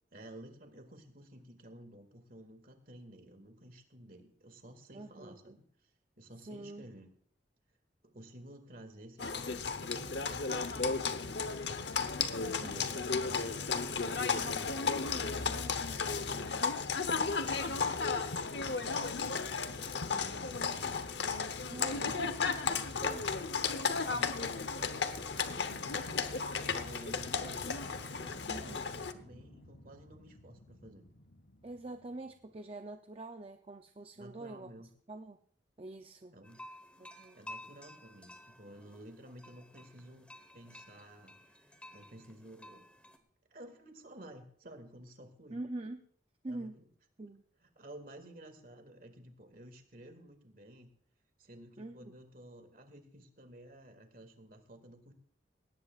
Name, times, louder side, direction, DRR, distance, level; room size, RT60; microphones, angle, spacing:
voice 1, 0.1-5.9 6.2-7.1 8.0-11.7 12.1-16.8 17.1-20.7 21.7-22.5 24.0-26.1 26.6-31.1 34.2-34.9 36.3-36.6 37.3-40.3 40.5-41.3 41.7-42.8 43.5-45.6 46.5-46.8 47.6-50.9 51.4-55.1, right 1 dB, 50° right, 6 dB, 2.2 m, -53 dB
voice 2, 4.9-5.6 6.5-6.9 12.5-13.0 21.7-23.4 28.5-28.9 31.6-34.7 35.1-35.4 35.8-36.4 37.0-37.4 45.5-46.0 46.4-46.7 47.2-47.4 51.8-52.1, right 2 dB, 30° right, 6 dB, 0.6 m, -45 dB
Livestock farm animals working animals, 9.2-29.1, left 5 dB, 65° left, 0.9 m, -34 dB
sound 1, 27.5-32.6, left 1 dB, 90° left, 2.1 m, -56 dB
sound 2, 36.4-43.2, left 1 dB, 5° left, 1.2 m, -53 dB
19.0 x 17.5 x 2.5 m, 0.62 s
head